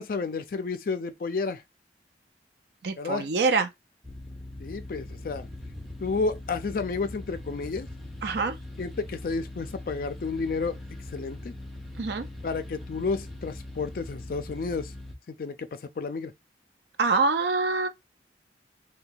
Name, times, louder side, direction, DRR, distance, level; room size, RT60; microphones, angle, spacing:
voice 1, 0.0-1.6 3.0-3.3 4.6-5.5 6.0-7.9 8.8-10.8 11.1-11.5 12.4-14.9 15.4-16.3, left 4 dB, 50° left, 0.4 m, -31 dB
voice 2, 2.8-3.7 8.2-8.6 12.0-12.3 17.0-17.9, right 4 dB, 65° right, 0.5 m, -25 dB
sound 1, 4.0-15.1, left 1 dB, ahead, 0.7 m, -41 dB
2.7 x 2.2 x 3.8 m
head